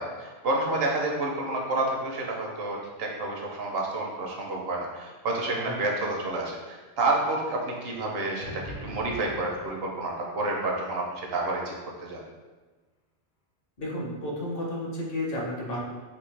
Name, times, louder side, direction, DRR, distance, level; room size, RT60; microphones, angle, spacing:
voice 1, 0.0-11.7 12.0-12.2, right 2 dB, 70° right, -1 dB, 0.9 m, -29 dB
sound 1, 8.4-10.5, left 1 dB, 90° left, 1.0 m, -43 dB
voice 2, 13.8-15.8, left 1 dB, 65° left, -3 dB, 1.0 m, -32 dB
3.5 x 2.6 x 3.2 m, 1.3 s
omnidirectional pair, 1.1 m